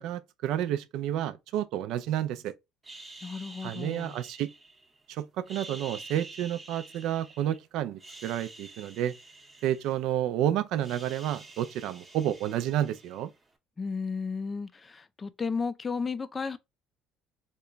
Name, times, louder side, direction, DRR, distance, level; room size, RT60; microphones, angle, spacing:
voice 1, 0.0-2.5 3.6-4.5 5.1-9.2 9.6-13.3, right 11 dB, 70° right, 0.3 m, -30 dB
sound 1, 2.8-5.0 5.4-7.6 7.9-10.3 10.6-13.5, right 2 dB, 15° right, 0.7 m, -48 dB
voice 2, 3.2-4.2 13.8-16.6, left 5 dB, 25° left, 0.3 m, -33 dB
2.9 x 2.2 x 3.6 m
cardioid pair, 115°, 0 cm